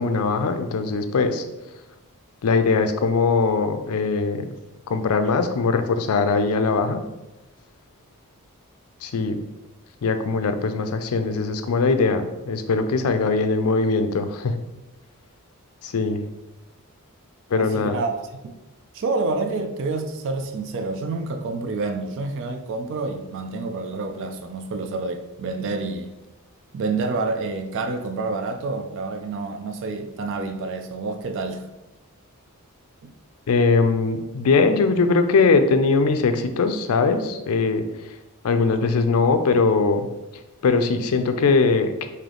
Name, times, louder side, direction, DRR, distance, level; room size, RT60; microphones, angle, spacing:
voice 1, 0.0-1.4 2.4-4.6 4.9-7.0 9.0-9.4 10.0-14.5 15.8-16.2 17.5-18.0 33.5-37.8 38.4-40.0 40.6-42.1, left 4 dB, 70° left, 0.4 m, -21 dB
voice 2, 17.5-18.6 18.9-26.1 26.7-31.7, right 3 dB, 60° right, 0.4 m, -28 dB
3.4 x 2.7 x 3.7 m
head